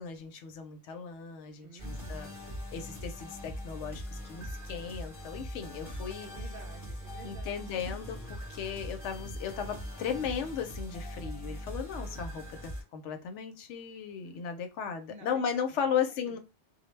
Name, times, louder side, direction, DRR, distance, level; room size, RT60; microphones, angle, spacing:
voice 1, 0.0-2.3 2.7-6.3 7.2-16.4, left 7 dB, 80° left, 7 dB, 0.9 m, -36 dB
voice 2, 1.6-2.3 6.2-8.0 14.3-14.4 15.1-15.3 15.7-16.0 16.3-16.4, right 3 dB, 60° right, 2 dB, 0.6 m, -51 dB
sound 1, 1.8-12.8, equal, 20° left, 0.9 m, -41 dB
2.2 x 2.1 x 3.1 m, 0.26 s
omnidirectional pair, 1.2 m